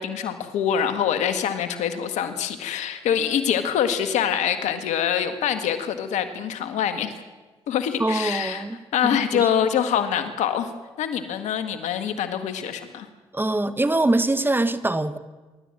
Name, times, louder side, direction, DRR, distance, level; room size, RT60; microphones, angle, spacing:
voice 1, 0.0-7.1 7.7-8.6 8.9-10.7 11.0-13.1, left 8 dB, 80° left, 9 dB, 1.7 m, -25 dB
voice 2, 8.0-9.5 13.3-15.2, right 2 dB, 15° right, 12 dB, 1.6 m, -24 dB
25.5 x 12.0 x 8.9 m, 1.3 s
supercardioid pair, 50°, 12 cm